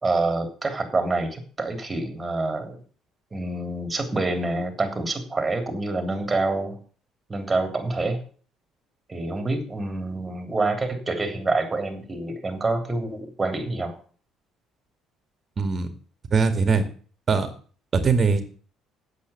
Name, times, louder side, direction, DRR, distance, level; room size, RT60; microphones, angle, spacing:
voice 1, 0.0-2.8 3.3-6.8 7.3-8.2 9.1-13.9, right 2 dB, 20° right, 6 dB, 3.2 m, -27 dB
voice 2, 15.6-15.9 16.3-16.8 17.3-17.5 17.9-18.4, right 5 dB, 40° right, 8 dB, 2.1 m, -21 dB
8.6 x 8.1 x 8.4 m, 0.43 s
cardioid pair, 95°, 0 cm